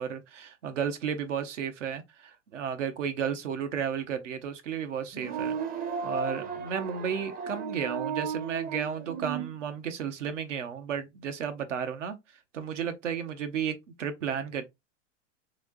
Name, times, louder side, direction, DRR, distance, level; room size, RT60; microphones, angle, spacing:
voice 1, 0.0-5.6 6.0-12.2 12.5-14.6, right 7 dB, 80° right, 1.0 m, -33 dB
sound 1, 5.1-9.5, right 6 dB, 25° right, 0.6 m, -34 dB
3.8 x 3.2 x 2.4 m
hypercardioid pair, 100°, 36 cm